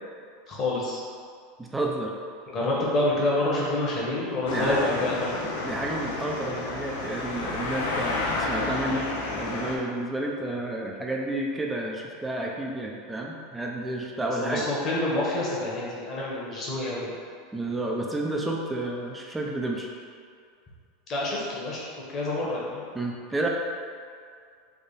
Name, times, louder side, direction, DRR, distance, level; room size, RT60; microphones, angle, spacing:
voice 1, 0.5-1.0 2.5-5.3 14.4-17.1 21.1-22.9, left 2 dB, 40° left, -5 dB, 1.2 m, -27 dB
voice 2, 1.6-2.1 2.8-2.9 4.5-5.1 5.6-9.1 9.4-14.7 17.5-19.9 22.9-23.5, right 1 dB, 10° right, -1 dB, 0.6 m, -31 dB
sound 1, 4.5-9.8, left 2 dB, 80° left, 0.6 m, -31 dB
3.5 x 2.4 x 4.1 m, 2.2 s
hypercardioid pair, 105°, 0 cm